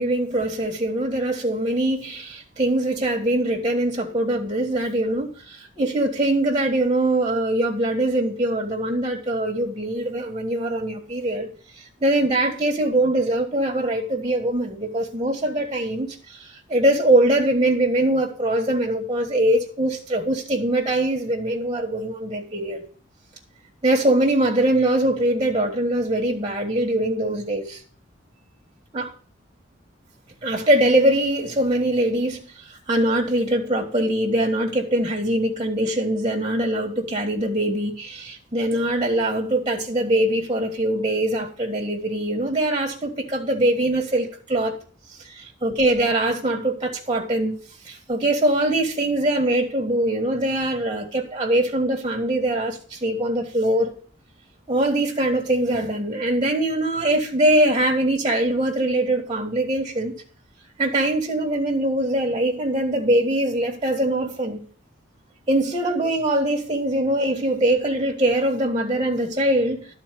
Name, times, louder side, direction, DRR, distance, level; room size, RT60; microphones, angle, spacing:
voice 1, 0.0-11.5 12.0-22.8 23.8-27.8 28.9-29.1 30.4-32.4 32.9-44.8 45.3-47.5 47.8-53.9 54.7-60.1 60.8-64.6 65.5-69.9, right 1 dB, 25° right, 1.6 m, -22 dB
12.0 x 4.3 x 7.6 m
head